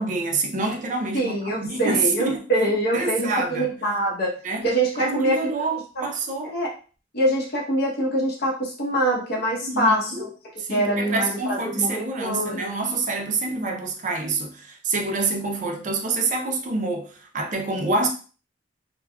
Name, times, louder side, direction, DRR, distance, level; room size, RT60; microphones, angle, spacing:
voice 1, 0.0-2.4 2.9-3.8 4.4-4.7 5.0-6.5 9.6-10.3 10.6-18.1, right 3 dB, 45° right, 0.5 m, -27 dB
voice 2, 1.1-4.4 4.6-5.5 6.0-6.1 6.4-6.7 7.1-10.3 10.7-12.7, right 1 dB, 55° left, 0.9 m, -24 dB
3.4 x 2.1 x 2.3 m
head